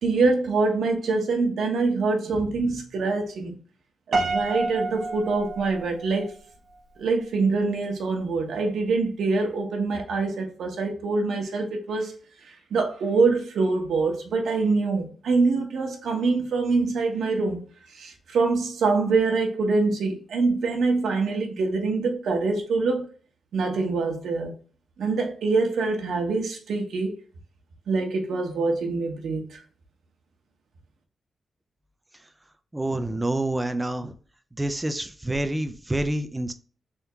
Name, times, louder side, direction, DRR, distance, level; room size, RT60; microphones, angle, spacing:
voice 1, 0.0-3.6 4.1-6.3 7.0-12.1 12.7-17.7 17.9-23.1 23.5-24.5 25.0-27.1 27.9-29.6, right 3 dB, 85° right, 1.0 m, -24 dB
Piano, 4.1-6.4, right 3 dB, 55° right, 0.8 m, -28 dB
voice 2, 32.7-34.1 34.6-36.5, right 1 dB, 10° right, 0.4 m, -27 dB
3.6 x 2.8 x 3.4 m
wide cardioid pair, 175°, 0 cm